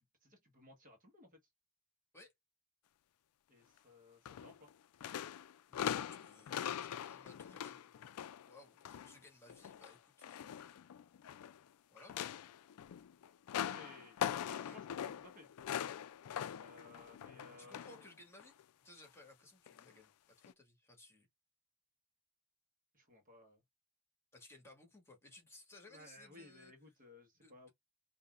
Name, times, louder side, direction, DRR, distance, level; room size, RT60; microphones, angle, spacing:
voice 1, 0.0-1.4 3.5-4.7 13.6-15.5 16.6-18.0 22.9-23.6 25.9-27.7, left 2 dB, 40° right, 1.4 m, -58 dB
sound 1, 4.2-4.7 5.0-9.1 9.5-11.6 12.0-18.1 18.4-18.6 19.7-19.8 20.4-20.5, left 9 dB, 75° left, 0.4 m, -42 dB
voice 2, 5.7-7.9 8.5-10.8 11.9-12.5 14.6-14.8 17.6-18.6 18.8-20.1 20.5-21.3 24.3-26.7 27.3-27.7, left 2 dB, 10° left, 1.7 m, -60 dB
5.3 x 2.7 x 2.5 m
head